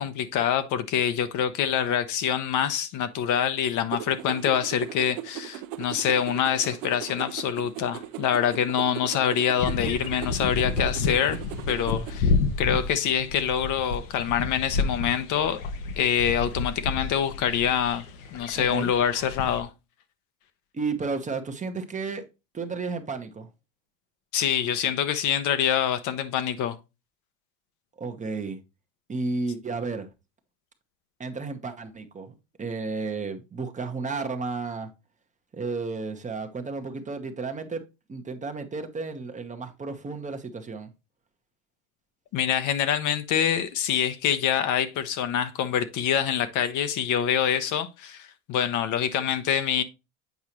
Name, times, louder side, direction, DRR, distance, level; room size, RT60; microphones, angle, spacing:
voice 1, 0.0-11.4 11.7-12.3 12.6-15.6 16.0-18.0 18.3-19.7 24.3-26.8 42.3-49.8, left 9 dB, 50° left, 0.8 m, -25 dB
sound 1, 3.9-12.2, right 13 dB, 70° right, 0.8 m, -38 dB
sound 2, 9.6-19.6, left 4 dB, 85° left, 1.2 m, -30 dB
voice 2, 18.5-18.9 20.7-22.2 22.5-23.5 28.0-28.6 29.1-30.1 31.2-34.9 35.5-37.8 38.1-40.9, right 4 dB, 20° right, 0.9 m, -32 dB
8.2 x 4.7 x 2.9 m
supercardioid pair, 95°, 39 cm